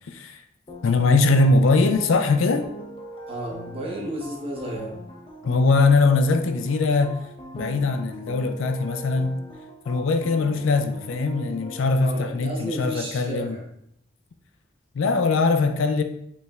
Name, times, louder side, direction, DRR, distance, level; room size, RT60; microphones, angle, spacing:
voice 1, 0.1-0.4 0.8-2.7 5.4-7.2 7.5-9.4 9.9-13.5 14.9-16.0, left 3 dB, 75° left, 0.4 m, -21 dB
sound 1, 0.7-12.0, right 1 dB, 25° left, 0.6 m, -41 dB
voice 2, 3.3-5.0 12.0-13.6, right 1 dB, 30° right, 1.0 m, -32 dB
5.1 x 3.2 x 2.4 m
head